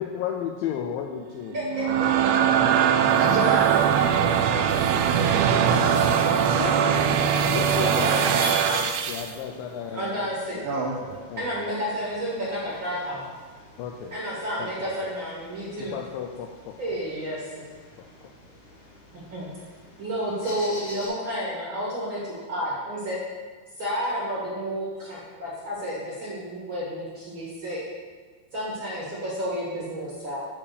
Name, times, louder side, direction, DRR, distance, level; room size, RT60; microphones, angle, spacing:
voice 1, 0.0-1.7 2.6-3.2 6.6-6.8 7.2-10.3 10.5-10.6 11.3-11.7 13.8-14.2 14.6-15.1 15.8-17.0 18.0-18.1, left 8 dB, 85° left, 2 dB, 2.0 m, -34 dB
voice 2, 1.5-1.8 2.2-3.0 9.9-10.6 11.4-13.3 14.1-16.0 16.8-17.6 19.1-19.5 20.0-23.2 23.8-27.8 28.5-30.4, equal, 45° right, -7 dB, 1.7 m, -31 dB
sound 1, 1.6-9.3, right 8 dB, 90° right, 2.6 m, -21 dB
voice 3, 3.2-6.1 10.6-11.1, right 3 dB, 70° right, -2 dB, 2.6 m, -32 dB
sound 2, 5.1-21.1, left 1 dB, 70° left, 4.4 m, -44 dB
9.8 x 3.5 x 6.6 m, 1.5 s
omnidirectional pair, 4.6 m